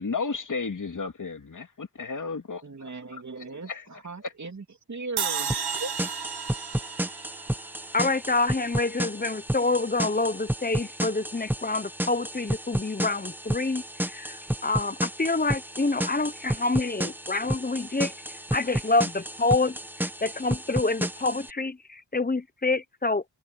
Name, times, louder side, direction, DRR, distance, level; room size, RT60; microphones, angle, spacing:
voice 1, 0.0-3.2 3.7-3.8, left 4 dB, 50° left, 2.6 m, -33 dB
voice 2, 2.6-6.3, right 3 dB, 45° right, 3.0 m, -39 dB
sound 1, 5.2-8.4, right 7 dB, 70° right, 1.4 m, -33 dB
sound 2, 5.5-21.5, right 1 dB, 5° right, 1.1 m, -32 dB
voice 3, 7.9-18.1 18.5-23.2, left 3 dB, 25° left, 1.0 m, -27 dB
wide cardioid pair, 70°, 39 cm